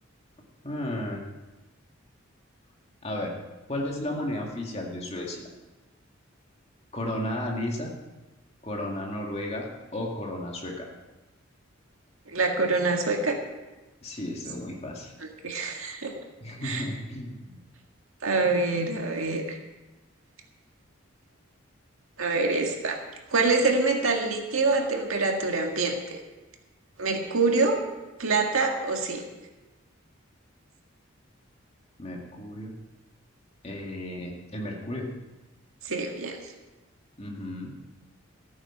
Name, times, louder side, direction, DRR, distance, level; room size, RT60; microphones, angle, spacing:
voice 1, 0.6-1.2 3.0-3.3 3.7-5.5 6.9-7.9 8.6-9.7 9.9-10.9 14.0-15.1 16.4-17.6 32.0-32.7 33.6-35.1 37.2-37.8, left 1 dB, 30° left, 0 dB, 2.1 m, -33 dB
voice 2, 12.3-13.4 15.2-16.2 16.6-16.8 18.2-19.6 22.2-23.0 23.3-26.2 27.0-27.8 28.2-29.2 35.8-36.4, right 3 dB, 85° right, 2 dB, 1.9 m, -25 dB
14.0 x 8.9 x 6.0 m, 1.1 s
head